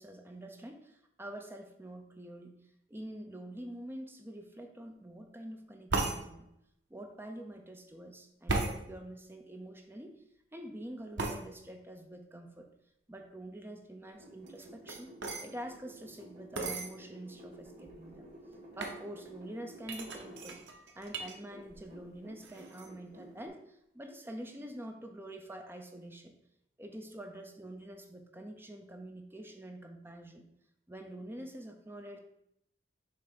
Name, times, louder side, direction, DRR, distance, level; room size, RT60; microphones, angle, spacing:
voice 1, 0.0-2.6 2.9-6.5 6.9-10.2 10.5-12.7 13.1-15.1 15.4-18.3 18.8-20.6 21.0-26.3 26.8-30.4 30.9-32.2, right 1 dB, 10° right, 4 dB, 0.7 m, -46 dB
sound 1, 5.9-6.2 8.5-8.8 11.2-11.4 14.5-15.5 16.6-16.9 17.6-17.7 17.9-18.3 18.8-19.0 19.9-21.4 21.7-22.1 22.4-22.9, right 3 dB, 90° right, 0.9 m, -35 dB
sound 2, 14.1-20.6 21.0-23.5, right 1 dB, 40° right, 2.1 m, -53 dB
6.7 x 2.9 x 5.3 m, 0.77 s
head